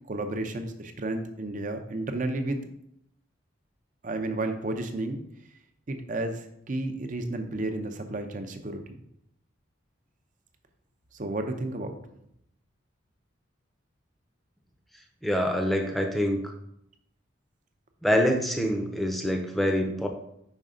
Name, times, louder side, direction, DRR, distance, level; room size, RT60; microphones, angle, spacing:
voice 1, 0.1-2.7 4.0-5.2 5.9-9.0 11.1-12.0, right 2 dB, 40° right, 7 dB, 0.6 m, -32 dB
voice 2, 15.2-16.5 18.0-20.1, equal, ahead, 3 dB, 0.6 m, -25 dB
5.3 x 5.1 x 3.7 m, 0.76 s
head